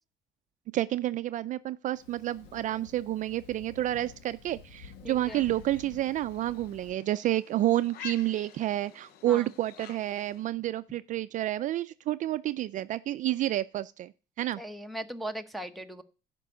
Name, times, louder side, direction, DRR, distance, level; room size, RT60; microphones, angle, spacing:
voice 1, 0.7-14.1 14.4-14.6, right 14 dB, 45° right, 0.4 m, -30 dB
Thunder, 1.9-6.9, left 6 dB, 90° left, 1.8 m, -50 dB
voice 2, 5.0-5.4 9.3-9.5 14.6-16.0, right 1 dB, ahead, 0.9 m, -38 dB
sound 1, 5.2-10.5, left 9 dB, 65° left, 0.8 m, -49 dB
11.0 x 5.3 x 6.8 m
cardioid pair, 145°, 17 cm